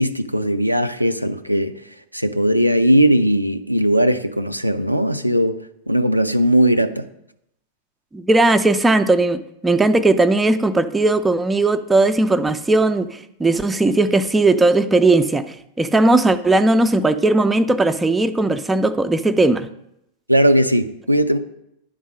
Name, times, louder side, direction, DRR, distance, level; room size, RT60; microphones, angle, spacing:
voice 1, 0.0-1.7 2.1-5.6 5.9-7.1 20.3-21.4, equal, 90° right, 0.4 m, -18 dB
voice 2, 8.1-19.7, right 2 dB, 10° right, 0.4 m, -17 dB
10.0 x 3.6 x 6.3 m
figure-of-eight pair, 90°, 0 cm